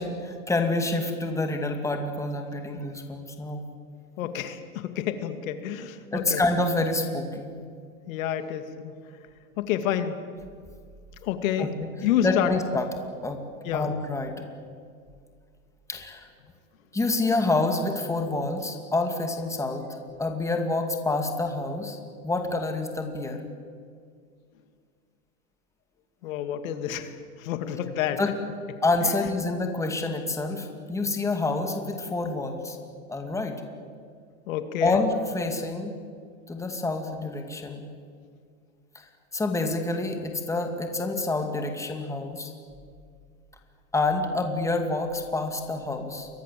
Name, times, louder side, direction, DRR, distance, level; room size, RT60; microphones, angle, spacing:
voice 1, 0.0-3.6 6.1-7.5 11.6-11.7 12.2-12.9 13.2-13.4 13.7-14.4 15.9-16.3 16.9-19.8 20.2-23.4 28.2-28.3 28.8-32.8 33.1-33.5 34.8-35.9 36.5-37.9 38.9-39.1 39.3-42.5 43.9-46.3, left 2 dB, 5° left, 4 dB, 2.5 m, -27 dB
voice 2, 4.2-6.4 8.1-8.9 9.6-10.2 11.2-11.7 12.0-12.5 13.6-13.9 26.2-28.2 29.0-29.1 34.5-35.0, left 10 dB, 65° left, 8 dB, 2.5 m, -29 dB
28.5 x 23.5 x 7.7 m, 2.1 s
supercardioid pair, 140°, 43 cm